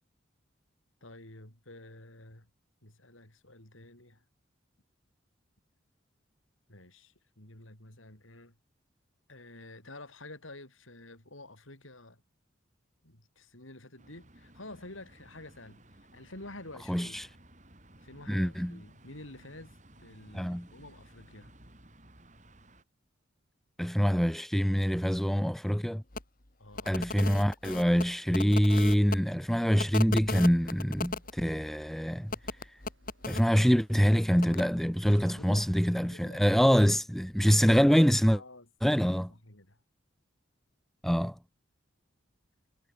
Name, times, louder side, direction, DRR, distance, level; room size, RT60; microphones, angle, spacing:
voice 1, 1.0-2.5 2.8-4.2 6.7-8.5 9.3-12.2 13.0-17.3 18.0-21.5 26.6-27.0 35.3-35.7 36.0-36.4 38.3-39.8, left 2 dB, 80° left, 6.8 m, -50 dB
sound 1, 14.0-22.8, right 1 dB, 35° right, 7.2 m, -57 dB
voice 2, 16.9-17.3 18.3-18.8 20.3-20.7 23.8-26.0 26.9-32.3 33.3-38.4 38.8-39.3 41.0-41.3, equal, ahead, 0.6 m, -25 dB
sound 2, 26.1-26.2 26.7-29.2 29.8-31.3 32.3-33.4 34.4-34.6, left 3 dB, 45° left, 2.6 m, -36 dB
sound 3, 30.5-36.2, right 1 dB, 70° right, 7.1 m, -60 dB
head